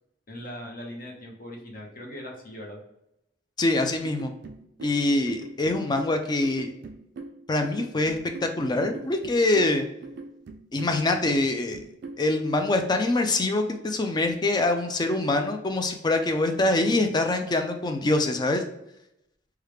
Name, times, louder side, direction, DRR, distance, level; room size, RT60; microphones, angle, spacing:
voice 1, 0.3-2.8, equal, 50° left, -1 dB, 0.8 m, -40 dB
voice 2, 3.6-4.3 4.8-6.7 7.5-9.9 10.7-11.8 12.2-18.6, left 2 dB, 25° left, 6 dB, 0.4 m, -24 dB
sound 1, 4.0-12.3, right 3 dB, 65° right, 0.3 m, -41 dB
3.3 x 2.3 x 3.1 m, 0.83 s
head